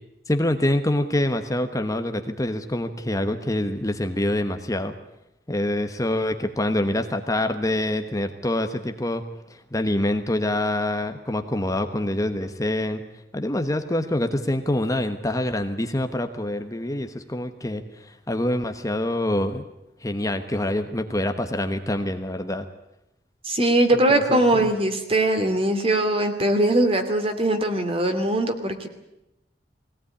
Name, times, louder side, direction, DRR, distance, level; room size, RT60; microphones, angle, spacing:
voice 1, 0.3-4.9 5.5-9.2 9.5-13.0 13.3-19.6 20.0-22.7 23.9-24.7, left 1 dB, 20° left, 7 dB, 1.1 m, -26 dB
voice 2, 23.4-28.9, right 1 dB, 35° right, 6 dB, 2.7 m, -21 dB
21.0 x 18.0 x 9.8 m, 0.90 s
head